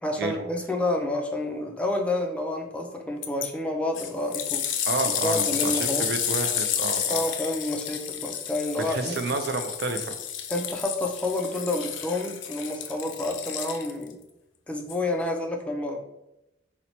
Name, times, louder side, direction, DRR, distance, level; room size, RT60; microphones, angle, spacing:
voice 1, 0.0-4.7 5.1-6.1 7.1-9.1 10.5-14.2 14.7-16.0, left 2 dB, 5° left, 2 dB, 0.3 m, -29 dB
sound 1, 3.2-3.5 3.9-14.1 14.9-15.0, left 9 dB, 85° left, 0.4 m, -31 dB
voice 2, 4.8-7.2 8.8-10.2, right 3 dB, 60° right, 6 dB, 0.4 m, -30 dB
2.9 x 2.1 x 3.9 m, 0.89 s
head